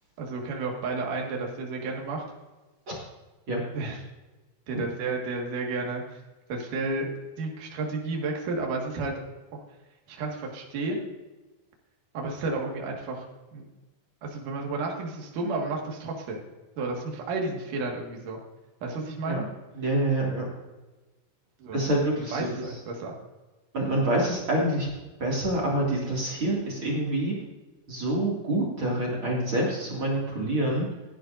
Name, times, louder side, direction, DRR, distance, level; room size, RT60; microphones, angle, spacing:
voice 1, 0.2-2.2 3.7-4.0 4.7-6.2 6.5-7.1 7.4-9.1 10.1-11.0 12.1-13.2 13.5-13.6 14.2-16.4 16.8-18.4 18.8-19.5 21.6-21.8 22.2-23.1 23.8-23.9, right 3 dB, 60° right, 0 dB, 3.2 m, -32 dB
voice 2, 19.7-20.5 21.7-22.7 23.7-24.9 25.2-27.3 27.9-30.9, right 1 dB, 40° right, -4 dB, 2.7 m, -26 dB
16.0 x 11.0 x 2.6 m, 1.1 s
omnidirectional pair, 4.3 m